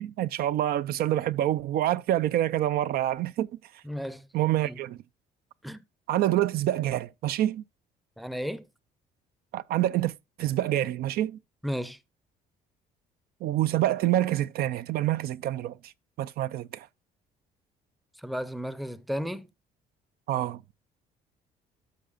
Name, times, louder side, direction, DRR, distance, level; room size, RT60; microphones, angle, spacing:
voice 1, 0.0-3.5 4.3-5.0 6.1-7.6 9.5-10.1 10.4-11.4 13.4-15.9 16.2-16.9 20.3-20.6, right 13 dB, 65° right, 0.4 m, -27 dB
voice 2, 3.8-4.3 4.6-4.8 5.6-5.8 8.2-8.7 11.6-12.0 18.2-19.5, equal, ahead, 0.6 m, -34 dB
12.5 x 5.6 x 2.4 m
cardioid pair, 110°, 17 cm